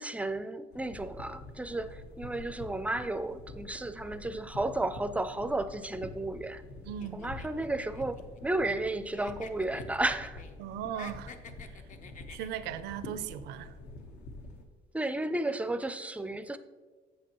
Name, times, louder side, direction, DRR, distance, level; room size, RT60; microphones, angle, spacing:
voice 1, 0.0-6.6 7.1-10.4 14.9-16.6, right 2 dB, 10° right, 0.4 m, -33 dB
sound 1, 0.7-14.6, left 2 dB, 80° left, 1.2 m, -47 dB
voice 2, 6.8-7.2 10.6-11.3 11.7-11.8 12.3-13.7, right 10 dB, 85° right, 0.5 m, -38 dB
sound 2, 7.0-8.9 9.1-10.5 10.8-12.8, left 5 dB, 45° left, 0.7 m, -50 dB
8.4 x 7.4 x 3.0 m
cardioid pair, 110°, 17 cm